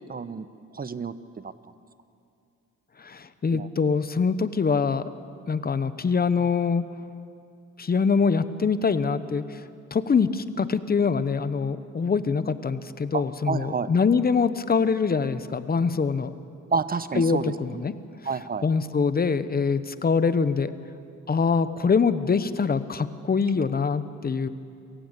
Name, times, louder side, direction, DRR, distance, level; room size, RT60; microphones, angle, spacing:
voice 1, 0.1-0.5 0.7-1.5 3.5-3.7 13.1-13.9 16.7-17.8 18.2-18.7, right 5 dB, 30° right, 13 dB, 1.0 m, -29 dB
voice 2, 3.0-5.1 5.5-6.8 7.8-9.6 9.9-16.3 17.1-17.9 18.6-20.7 21.3-24.5, left 5 dB, 30° left, 13 dB, 1.0 m, -24 dB
27.5 x 15.5 x 8.3 m, 2.5 s
cardioid pair, 90°, 30 cm